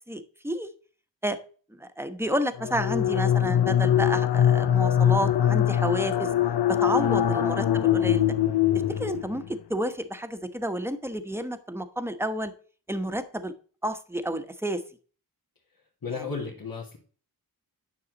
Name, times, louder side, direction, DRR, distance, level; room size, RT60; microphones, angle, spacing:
voice 1, 0.1-0.7 1.2-1.4 1.7-6.3 6.7-8.2 9.0-9.4 9.7-12.5 12.9-13.5 13.8-14.8 16.1-16.2, right 1 dB, 5° right, 9 dB, 1.1 m, -30 dB
sound 1, 2.6-9.5, left 10 dB, 85° left, 0.6 m, -23 dB
voice 2, 16.0-17.0, left 5 dB, 60° left, -3 dB, 2.1 m, -34 dB
9.7 x 6.5 x 4.0 m, 0.40 s
wide cardioid pair, 60°, 39 cm